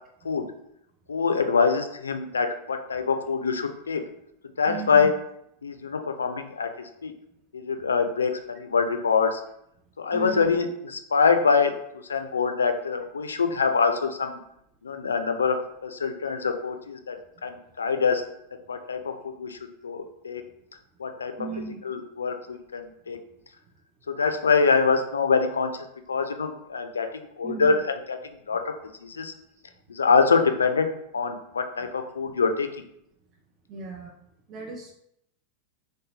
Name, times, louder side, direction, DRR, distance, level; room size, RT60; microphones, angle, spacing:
voice 1, 1.1-4.0 4.6-5.1 5.6-7.1 7.5-9.4 10.0-11.7 12.1-14.4 14.8-17.2 17.4-18.2 18.7-20.4 21.0-21.3 21.8-23.2 24.1-25.7 26.1-28.2 28.5-28.6 29.0-29.3 29.9-30.9 31.1-32.7, left 5 dB, 70° left, 7 dB, 0.3 m, -24 dB
voice 2, 4.7-5.1 10.1-10.5 21.4-21.8 27.4-27.8 28.5-28.6 31.8-31.9 33.7-34.1 34.5-34.9, right 4 dB, 30° right, 0 dB, 0.5 m, -36 dB
3.2 x 2.8 x 2.8 m, 0.77 s
figure-of-eight pair, 90°, 0 cm